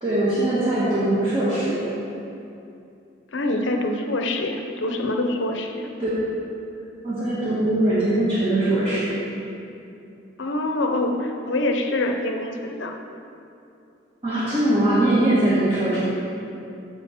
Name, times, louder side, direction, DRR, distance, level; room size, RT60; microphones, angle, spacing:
voice 1, 0.0-1.9 6.0-6.2 7.0-9.1 14.2-16.0, right 1 dB, 25° right, -11 dB, 1.6 m, -21 dB
voice 2, 3.3-5.9 10.4-12.9, left 1 dB, 70° left, 3 dB, 0.8 m, -25 dB
14.5 x 5.1 x 4.3 m, 2.7 s
head